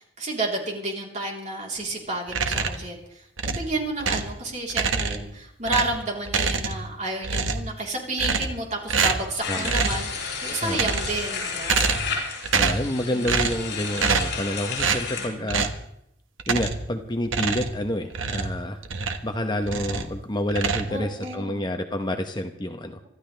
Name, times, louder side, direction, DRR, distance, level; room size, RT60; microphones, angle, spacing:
voice 1, 0.0-11.9 13.1-13.3 15.2-15.6 20.9-21.7, right 2 dB, 35° right, -1 dB, 3.9 m, -31 dB
sound 1, 2.3-2.9 3.4-4.4 4.7-5.3 5.6-6.9 7.2-7.7 8.2-8.6 8.9-9.3 9.6-10.1 10.6-11.3 11.6-12.2 12.4-12.9 13.2-13.6 14.0-14.4 14.8-15.1 15.5-15.8 16.4-16.9 17.2-19.3 19.6-20.1 20.5-21.3, right 5 dB, 85° right, 1.3 m, -26 dB
sound 2, 9.4-15.3, left 5 dB, 60° left, 7.0 m, -32 dB
voice 2, 12.5-15.7 16.5-18.8 19.2-23.0, left 1 dB, 20° left, 5 dB, 1.0 m, -28 dB
25.5 x 13.5 x 3.5 m, 0.77 s
head